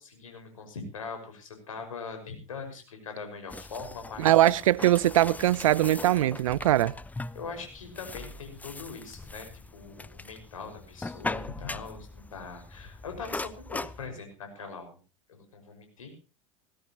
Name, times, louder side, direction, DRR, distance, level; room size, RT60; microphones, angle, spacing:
voice 1, 0.0-4.3 7.3-9.5 9.7-15.0 15.3-16.1, left 5 dB, 85° left, 5.9 m, -41 dB
sound 1, 3.5-14.1, left 3 dB, 10° left, 0.6 m, -40 dB
voice 2, 4.2-6.9, right 14 dB, 75° right, 0.7 m, -22 dB
19.0 x 16.5 x 3.1 m
hypercardioid pair, 90°, 17 cm